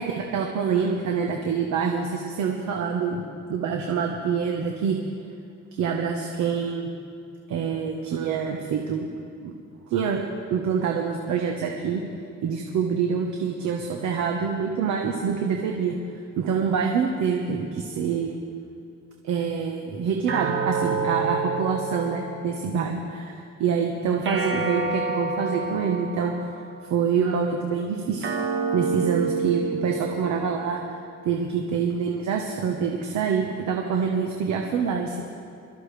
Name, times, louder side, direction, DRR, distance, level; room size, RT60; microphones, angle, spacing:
voice 1, 0.0-3.2 3.5-5.0 5.7-6.9 7.5-9.1 9.4-9.6 9.9-10.2 10.5-12.0 12.4-15.9 16.4-18.4 19.2-26.5 26.9-28.3 28.7-30.8 31.2-35.2, right 6 dB, 70° right, 1 dB, 1.3 m, -26 dB
sound 1, 20.3-22.9 24.2-26.8 28.2-30.8, right 4 dB, 40° right, 1.3 m, -29 dB
24.0 x 13.5 x 3.4 m, 2.4 s
cardioid pair, 180°, 29 cm